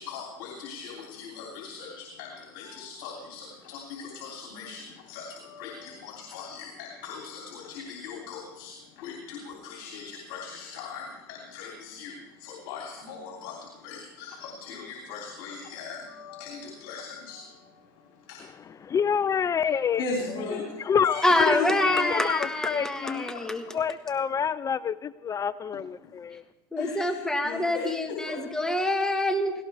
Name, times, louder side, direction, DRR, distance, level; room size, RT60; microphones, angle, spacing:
voice 1, 0.0-18.7 20.0-22.2 23.0-23.7 26.8-28.5, left 5 dB, 70° left, -1 dB, 3.1 m, -38 dB
voice 2, 18.8-20.0 20.8-21.6 21.8-23.3 23.7-26.4, left 7 dB, 30° left, 17 dB, 0.4 m, -27 dB
voice 3, 21.2-23.7 26.7-29.5, left 1 dB, 5° left, 5 dB, 1.6 m, -26 dB
18.0 x 17.0 x 3.5 m, 0.97 s
supercardioid pair, 95°, 11 cm